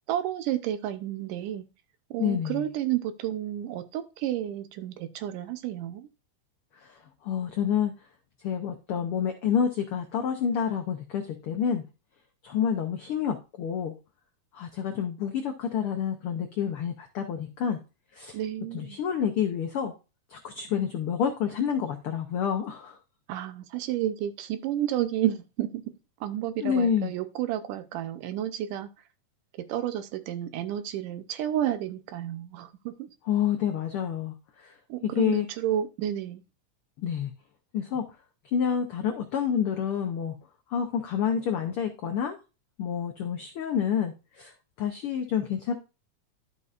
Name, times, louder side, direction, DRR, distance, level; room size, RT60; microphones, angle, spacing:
voice 1, 0.1-1.6 2.1-6.1 18.3-19.0 23.3-25.8 26.2-28.9 29.6-33.1 34.9-36.4, right 12 dB, 85° right, 2.4 m, -31 dB
voice 2, 2.2-2.7 7.2-7.9 8.4-11.8 12.4-13.9 14.5-17.8 18.1-18.4 18.7-19.9 20.3-23.0 26.6-27.1 33.3-34.3 34.6-34.7 35.2-35.5 37.0-37.3 37.7-38.0 38.5-40.3 40.7-42.3 42.8-44.5 44.8-45.7, left 8 dB, 85° left, 1.2 m, -28 dB
12.0 x 5.5 x 2.5 m
omnidirectional pair, 3.6 m